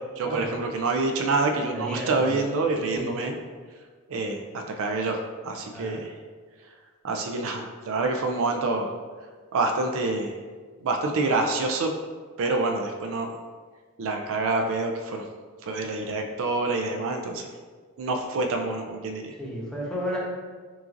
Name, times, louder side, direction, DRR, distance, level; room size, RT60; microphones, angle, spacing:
voice 1, 0.2-3.3 4.1-6.1 7.0-8.9 9.5-10.3 10.8-11.9 12.4-13.4 14.0-15.3 15.6-17.5 18.0-19.4, right 3 dB, 65° right, 3 dB, 0.4 m, -27 dB
voice 2, 1.7-2.4 2.9-3.1 5.7-6.0 16.0-16.2 19.4-20.2, equal, 5° left, -5 dB, 0.9 m, -33 dB
5.8 x 2.5 x 2.5 m, 1.5 s
head